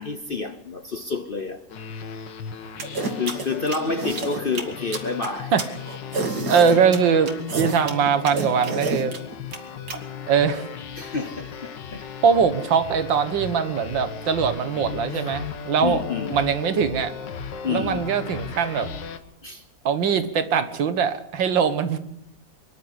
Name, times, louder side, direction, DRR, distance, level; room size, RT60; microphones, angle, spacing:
voice 1, 0.0-1.6 3.2-5.5 9.9-10.0 11.0-12.2 15.1-15.2 15.8-16.4 17.6-18.0 19.4-19.6, left 4 dB, 45° left, 0.7 m, -29 dB
sound 1, 1.7-19.2, left 7 dB, 65° left, 1.9 m, -36 dB
sound 2, 2.8-10.0, right 3 dB, 55° right, 2.8 m, -29 dB
voice 2, 6.5-9.1 10.3-10.7 12.2-16.0 16.3-17.1 17.7-18.9 19.9-22.0, right 6 dB, 70° right, 2.0 m, -21 dB
24.0 x 12.0 x 9.8 m
omnidirectional pair, 2.2 m